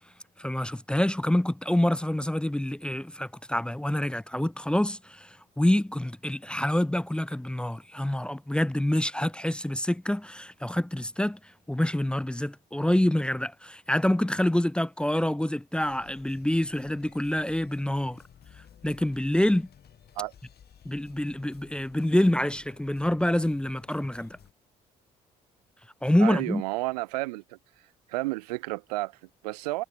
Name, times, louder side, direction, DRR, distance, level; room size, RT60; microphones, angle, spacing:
voice 1, 0.4-11.4 11.7-18.2 18.8-19.7 20.8-24.4 26.0-26.6, left 1 dB, 5° left, 0.5 m, -26 dB
sound 1, 15.8-24.5, left 9 dB, 55° left, 3.9 m, -55 dB
voice 2, 26.2-27.6 28.1-29.8, right 22 dB, 85° right, 0.5 m, -31 dB
hypercardioid pair, 50°, 20 cm